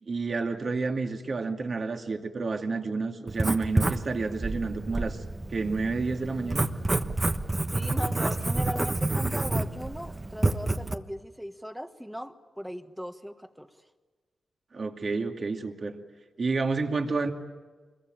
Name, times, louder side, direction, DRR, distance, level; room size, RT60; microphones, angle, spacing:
voice 1, 0.0-5.2 5.5-6.7 14.7-15.9 16.4-17.3, right 4 dB, 45° right, 4 dB, 2.4 m, -30 dB
Writing, 3.3-10.9, right 2 dB, 20° right, 1.2 m, -29 dB
voice 2, 7.7-13.7, equal, ahead, 8 dB, 1.5 m, -38 dB
26.5 x 22.0 x 9.1 m, 1.4 s
wide cardioid pair, 105°, 0 cm